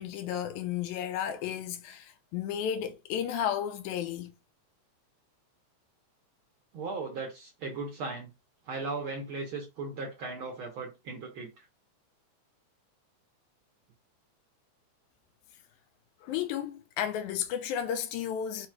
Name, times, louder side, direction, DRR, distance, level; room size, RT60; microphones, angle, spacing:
voice 1, 0.0-4.3 16.2-18.7, left 9 dB, 90° left, 2.0 m, -33 dB
voice 2, 6.7-8.3 8.7-11.6 16.3-16.4, right 3 dB, 65° right, 1.3 m, -37 dB
4.8 x 2.3 x 4.4 m
omnidirectional pair, 3.3 m